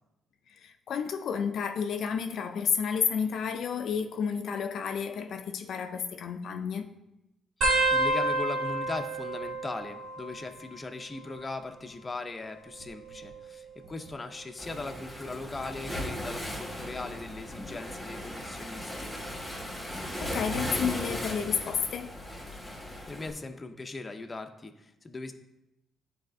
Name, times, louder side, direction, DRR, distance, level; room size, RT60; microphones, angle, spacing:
voice 1, 0.6-6.9 20.2-22.1, left 7 dB, 65° left, 0.4 m, -31 dB
voice 2, 7.6-19.1 23.1-25.3, left 3 dB, 25° left, 0.6 m, -39 dB
sound 1, 7.6-10.8 11.1-11.7 12.7-14.1 14.8-15.1 16.3-16.7 18.2-18.3, right 2 dB, 70° right, 1.1 m, -31 dB
Waves surf, 14.6-23.3, equal, ahead, 1.7 m, -37 dB
10.0 x 4.1 x 2.6 m
cardioid pair, 90°, 0 cm